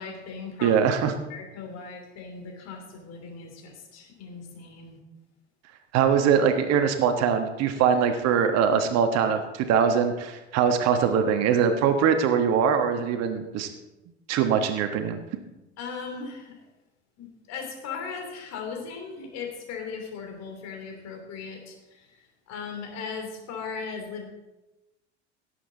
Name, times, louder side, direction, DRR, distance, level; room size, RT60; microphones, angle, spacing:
voice 1, 0.0-0.7 1.3-5.0 15.8-16.5 17.2-24.2, left 5 dB, 50° left, 3 dB, 3.1 m, -38 dB
voice 2, 0.6-1.1 5.9-13.7 14.3-15.2, right 7 dB, 50° right, 7 dB, 1.3 m, -22 dB
17.5 x 8.0 x 4.0 m, 1.0 s
figure-of-eight pair, 70°, 34 cm